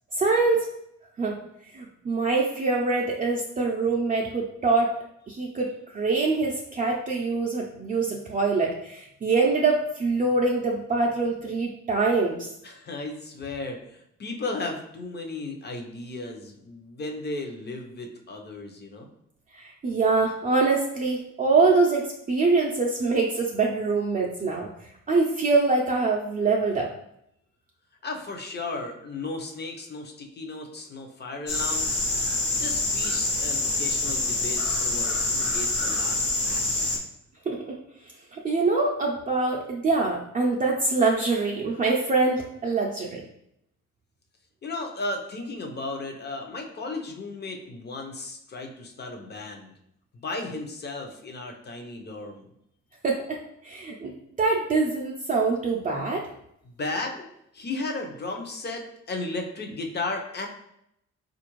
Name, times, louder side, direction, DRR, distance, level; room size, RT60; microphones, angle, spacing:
voice 1, 0.1-0.7 1.2-1.4 1.7-4.9 5.3-12.5 19.5-24.7 25.1-26.9 37.5-37.8 38.3-43.2 53.0-53.4 53.6-56.3, right 3 dB, 25° right, -2 dB, 0.5 m, -24 dB
voice 2, 12.6-19.1 28.0-32.0 32.6-36.9 44.6-49.7 50.2-52.5 56.8-57.3 57.5-60.5, left 2 dB, 35° left, 3 dB, 0.7 m, -35 dB
sound 1, 31.5-37.0, left 2 dB, 50° left, 1.1 m, -26 dB
4.1 x 2.5 x 3.0 m, 0.77 s
cardioid pair, 90°, 30 cm